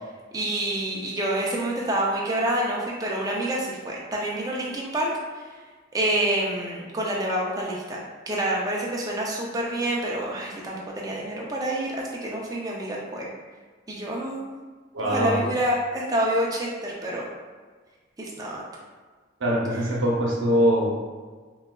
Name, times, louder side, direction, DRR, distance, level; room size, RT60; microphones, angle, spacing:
voice 1, 0.3-5.5 5.9-8.0 8.3-13.3 13.9-14.6 15.0-17.3 18.2-18.6, right 1 dB, 20° right, -3 dB, 0.4 m, -27 dB
voice 2, 14.9-15.4 19.4-20.9, equal, 80° right, -3 dB, 0.7 m, -22 dB
3.8 x 2.3 x 2.2 m, 1.5 s
head